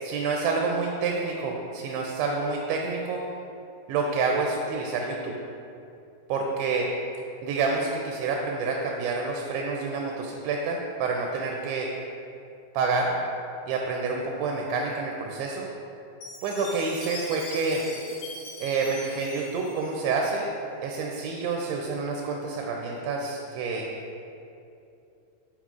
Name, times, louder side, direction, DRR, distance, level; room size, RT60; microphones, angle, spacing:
voice 1, 0.0-3.2 3.9-5.3 6.3-6.9 7.4-11.9 12.7-13.1 13.7-15.7 16.4-17.8 18.6-20.5 20.8-23.9, right 4 dB, 85° right, 0 dB, 2.5 m, -28 dB
Chime, 16.2-20.5, left 2 dB, 80° left, 1.8 m, -41 dB
7.3 x 5.4 x 2.4 m, 2.7 s
omnidirectional pair, 4.9 m